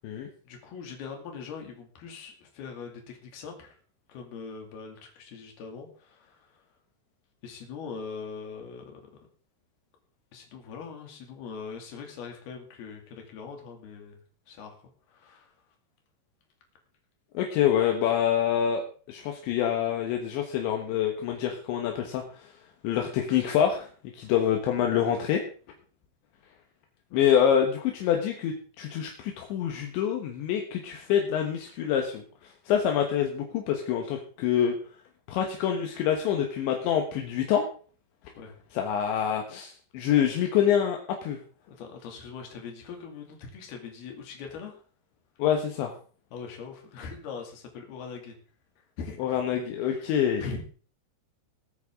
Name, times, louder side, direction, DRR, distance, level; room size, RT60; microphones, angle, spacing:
voice 1, 0.4-3.8 4.1-6.6 7.4-9.2 10.3-14.2 14.5-14.8 15.1-15.5 27.1-27.2 38.4-38.5 41.7-44.8 46.3-48.4 49.0-49.4 49.8-50.6, left 5 dB, 60° left, 2 dB, 4.2 m, -41 dB
voice 2, 17.4-18.8 19.1-22.2 22.8-23.9 24.1-25.4 27.1-32.2 32.7-34.8 35.3-37.7 38.7-41.4 45.4-45.9 49.2-50.4, left 9 dB, 75° left, 3 dB, 3.6 m, -26 dB
20.5 x 9.2 x 3.7 m, 0.41 s
omnidirectional pair, 5.3 m